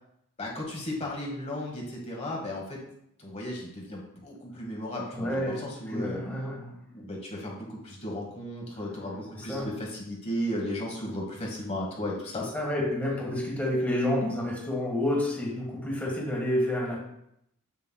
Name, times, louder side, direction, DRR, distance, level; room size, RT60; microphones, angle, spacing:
voice 1, 0.4-2.8 3.2-6.2 6.9-12.5, left 1 dB, 30° left, -2 dB, 1.2 m, -35 dB
voice 2, 5.1-7.1 9.4-9.7 12.4-17.0, left 1 dB, 5° left, -3 dB, 1.4 m, -29 dB
7.4 x 7.3 x 2.2 m, 0.77 s
head